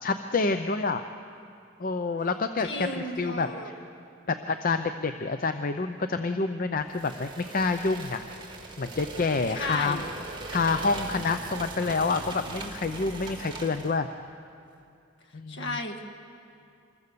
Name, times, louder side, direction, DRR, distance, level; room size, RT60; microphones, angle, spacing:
voice 1, 0.0-1.0 1.8-3.7 4.3-8.2 8.8-10.0 10.5-14.1 15.3-15.8, left 4 dB, 45° left, 8 dB, 0.6 m, -28 dB
voice 2, 2.6-3.7 9.5-10.1 15.5-16.0, left 1 dB, 65° left, 4 dB, 2.0 m, -34 dB
sound 1, 6.9-14.0, right 3 dB, 25° right, 2.4 m, -40 dB
26.0 x 21.5 x 6.8 m, 2.6 s
head